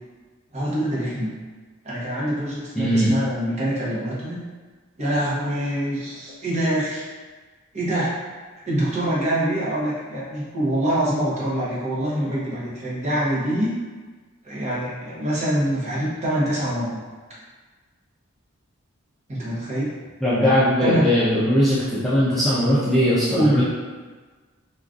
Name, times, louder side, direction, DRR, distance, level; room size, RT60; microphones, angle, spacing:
voice 1, 0.5-1.4 1.8-4.4 5.0-7.0 7.7-8.2 8.7-13.7 14.4-17.0 19.3-19.9 20.8-21.1 23.3-23.6, right 1 dB, 35° right, -8 dB, 0.8 m, -24 dB
voice 2, 2.8-3.1 20.2-23.6, equal, ahead, -11 dB, 0.4 m, -19 dB
3.4 x 2.3 x 2.5 m, 1.4 s
head